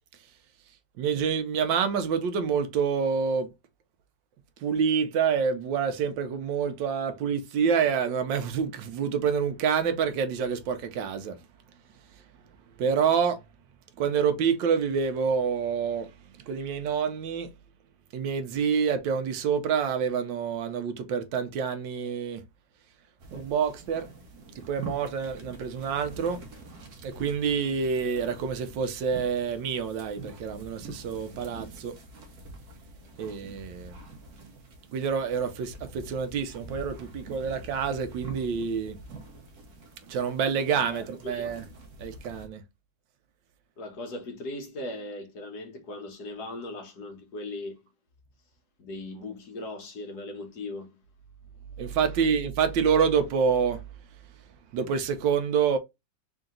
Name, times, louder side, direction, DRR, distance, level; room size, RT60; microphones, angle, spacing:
voice 1, 1.0-3.5 4.6-11.4 12.8-13.4 14.0-16.1 16.5-17.5 18.1-22.4 23.3-24.1 24.7-26.4 27.0-32.0 33.2-34.0 34.9-39.0 40.1-41.6 42.0-42.6 51.8-53.8 54.7-55.8, right 6 dB, 80° right, 1.4 m, -27 dB
sound 1, 23.2-42.5, right 2 dB, 65° right, 1.2 m, -45 dB
voice 2, 40.8-41.4 43.8-47.8 48.8-51.0, left 2 dB, 60° left, 1.5 m, -38 dB
3.8 x 2.7 x 3.6 m
omnidirectional pair, 2.0 m